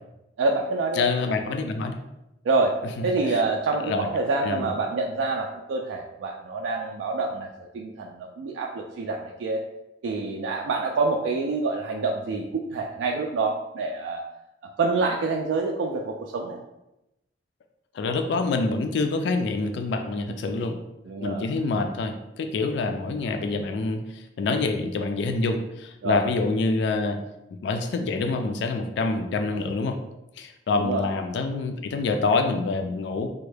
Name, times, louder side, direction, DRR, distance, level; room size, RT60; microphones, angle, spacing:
voice 1, 0.4-1.3 2.5-2.7 3.0-7.5 7.7-9.6 10.0-14.2 14.8-16.6 21.1-21.4 26.0-26.2 30.7-31.0, right 3 dB, 80° right, 1 dB, 0.3 m, -27 dB
voice 2, 0.9-2.0 2.8-3.4 3.8-4.1 4.4-4.7 17.9-20.8 21.2-27.2 27.6-30.0 30.4-33.3, left 3 dB, 65° left, 6 dB, 0.3 m, -26 dB
3.4 x 2.1 x 3.2 m, 0.91 s
head